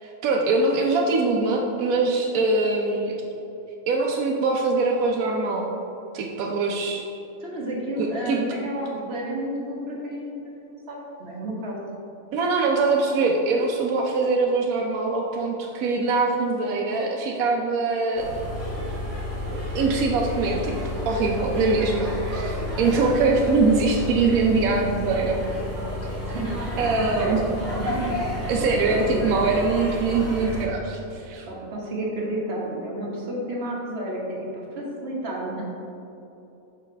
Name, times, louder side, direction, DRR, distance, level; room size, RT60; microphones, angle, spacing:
voice 1, 0.0-3.1 3.9-5.7 6.1-7.0 8.0-8.4 12.3-18.3 19.5-20.7 21.1-25.4 26.8-27.4 28.5-31.5, right 3 dB, 80° right, 0 dB, 1.0 m, -23 dB
voice 2, 7.4-10.4 10.9-11.8 22.8-23.2 26.1-27.4 27.7-28.1 28.4-28.5 28.8-29.4 31.5-35.6, right 1 dB, 50° right, -3 dB, 1.3 m, -31 dB
sound 1, 18.2-30.6, left 1 dB, 10° left, 1.4 m, -31 dB
6.9 x 4.9 x 3.3 m, 3.0 s
omnidirectional pair, 1.5 m